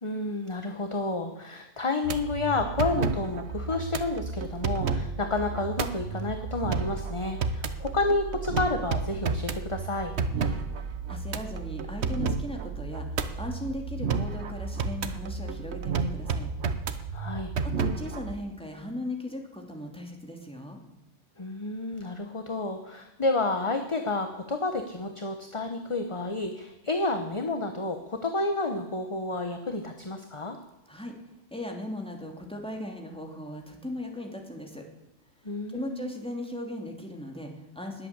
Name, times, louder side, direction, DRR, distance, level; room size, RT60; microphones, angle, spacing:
voice 1, 0.0-10.1 17.1-17.5 21.4-30.6 35.4-36.0, left 2 dB, 25° left, 5 dB, 1.1 m, -30 dB
sound 1, 2.0-18.3, right 5 dB, 60° right, 1.2 m, -31 dB
voice 2, 10.4-16.5 17.6-20.8 30.9-31.2 31.5-34.8 35.7-38.1, left 1 dB, 5° left, 1 dB, 2.7 m, -38 dB
20.5 x 8.4 x 8.2 m, 0.93 s
omnidirectional pair, 1.3 m